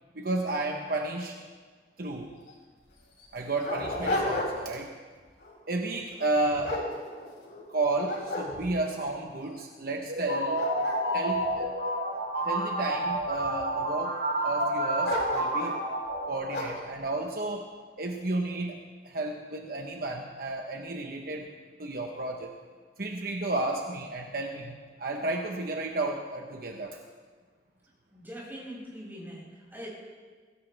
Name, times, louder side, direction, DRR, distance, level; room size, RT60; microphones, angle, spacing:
voice 1, 0.1-1.4 2.0-2.4 3.3-4.9 5.7-6.8 7.7-10.7 11.1-11.7 12.4-15.8 16.3-17.7 18.0-21.5 21.8-22.6 23.0-27.0, right 2 dB, 55° right, 2 dB, 1.1 m, -32 dB
Dog, 2.1-2.2 2.5-2.6 3.2-4.8 5.2-5.5 6.1-7.6 8.0-9.0 9.6-9.7 10.1-12.5 13.1-13.7 15.0-15.8 16.5-16.9, left 2 dB, 80° left, 5.1 m, -34 dB
sound 1, 10.1-16.9, right 1 dB, 70° right, 2.0 m, -30 dB
voice 2, 28.1-29.9, equal, 10° right, -6 dB, 6.6 m, -42 dB
22.5 x 16.5 x 3.5 m, 1.5 s
head